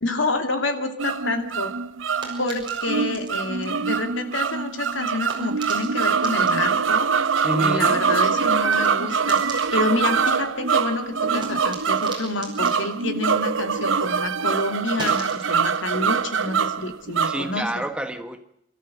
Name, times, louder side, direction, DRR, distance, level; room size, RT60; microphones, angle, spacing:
voice 1, 0.0-1.7 2.4-7.1 7.6-17.7, left 2 dB, 80° left, 2.6 m, -28 dB
sound 1, 1.0-17.7, right 6 dB, 85° right, 0.8 m, -24 dB
sound 2, 1.4-14.1 14.4-17.7, right 3 dB, 25° right, 6.0 m, -43 dB
voice 2, 7.4-8.0 17.2-18.4, right 1 dB, 5° right, 1.2 m, -28 dB
28.0 x 13.5 x 7.6 m
head